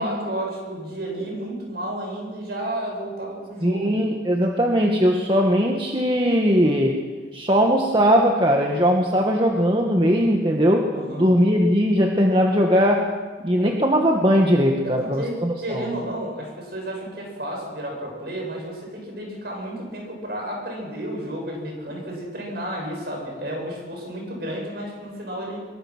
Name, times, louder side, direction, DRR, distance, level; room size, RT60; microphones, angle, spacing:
voice 1, 0.0-4.0 10.9-11.4 13.6-13.8 14.8-25.7, right 1 dB, 55° right, 0 dB, 7.9 m, -32 dB
voice 2, 3.6-7.0 7.3-13.1 13.4-15.9, equal, 25° right, 1 dB, 1.7 m, -19 dB
24.0 x 23.5 x 6.3 m, 1.4 s
head